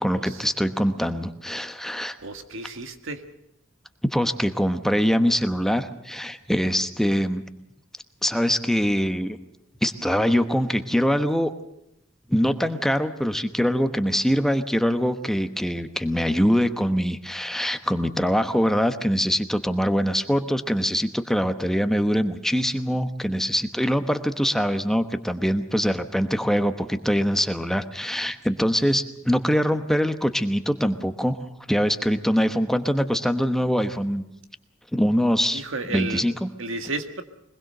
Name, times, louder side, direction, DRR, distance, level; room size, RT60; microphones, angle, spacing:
voice 1, 0.0-2.2 4.0-7.4 8.2-9.4 9.8-11.5 12.3-31.4 31.7-34.2 34.9-35.6 35.9-36.5, equal, ahead, 9 dB, 1.0 m, -23 dB
voice 2, 2.2-3.2 35.5-36.2 36.6-37.2, right 3 dB, 65° right, 8 dB, 1.8 m, -32 dB
23.0 x 21.0 x 6.6 m, 0.81 s
head